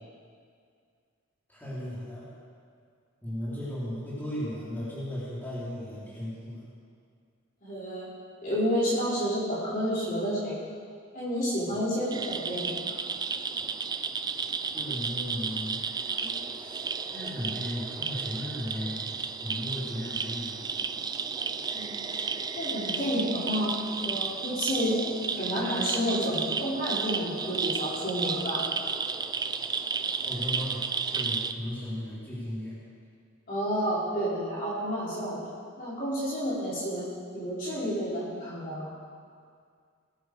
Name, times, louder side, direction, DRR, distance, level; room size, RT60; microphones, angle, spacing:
voice 1, 1.5-2.3 3.2-6.6 14.7-15.8 16.5-16.9 17.1-20.7 30.2-32.8, equal, 10° left, -10 dB, 3.6 m, -36 dB
voice 2, 7.6-8.1 8.4-10.5 11.1-12.9 16.2-16.3 21.7-22.0 22.6-23.7 24.0-25.0 25.3-28.7 33.5-35.4 35.8-37.0 37.3-38.9, equal, 40° left, -8 dB, 4.4 m, -30 dB
sound 1, 12.1-31.5, right 5 dB, 20° right, 0.3 m, -33 dB
19.0 x 10.5 x 4.8 m, 2.2 s
head